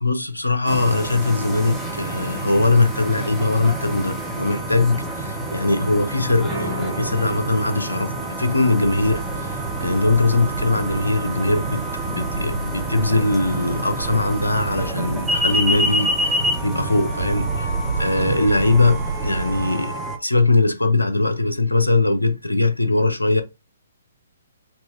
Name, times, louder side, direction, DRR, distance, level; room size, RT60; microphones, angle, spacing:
voice 1, 0.0-17.7 18.0-23.4, left 2 dB, 80° left, 0.7 m, -21 dB
sound 1, 0.7-20.2, right 1 dB, ahead, 0.8 m, -28 dB
sound 2, 6.5-18.2, right 2 dB, 35° right, 1.8 m, -42 dB
sound 3, 8.8-19.7, right 4 dB, 55° right, 0.6 m, -31 dB
4.0 x 3.1 x 2.4 m
figure-of-eight pair, 125°, 0 cm